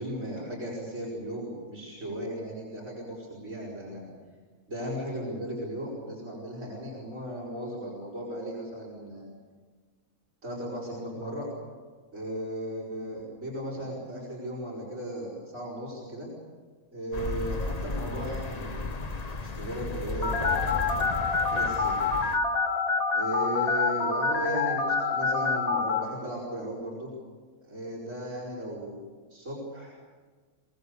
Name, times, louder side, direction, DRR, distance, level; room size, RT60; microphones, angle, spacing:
voice 1, 0.0-4.1 4.7-9.3 10.4-11.5 12.1-16.3 16.9-19.0 19.4-21.2 21.5-22.0 22.2-22.3 23.1-27.1 27.6-30.1, equal, 60° right, -5 dB, 6.6 m, -36 dB
sound 1, 17.1-22.4, left 3 dB, 30° left, 1.1 m, -34 dB
Telephone, 20.2-26.0, left 4 dB, 85° left, 2.8 m, -26 dB
25.0 x 22.0 x 6.9 m, 1.5 s
omnidirectional pair, 1.5 m